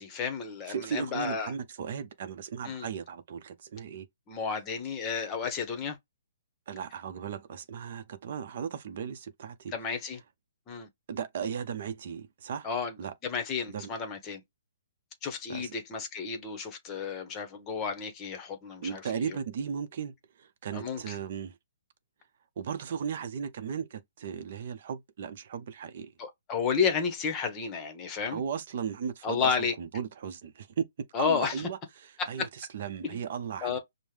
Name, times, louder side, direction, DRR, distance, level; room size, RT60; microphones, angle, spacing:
voice 1, 0.0-1.5 2.6-2.9 4.3-6.0 9.7-10.2 10.7-10.9 12.6-12.9 13.2-14.4 15.2-19.0 19.3-19.4 20.7-21.1 26.2-28.4 29.2-29.7 31.1-31.5 32.2-32.5 33.6-33.8, left 6 dB, 20° left, 1.0 m, -32 dB
voice 2, 0.7-4.1 6.7-9.7 11.1-12.7 13.0-13.1 13.7-13.9 15.5-15.7 18.8-21.6 22.6-26.1 28.3-30.8 31.2-33.8, right 7 dB, 50° right, 0.7 m, -36 dB
5.3 x 2.1 x 3.2 m
hypercardioid pair, 155°, 0 cm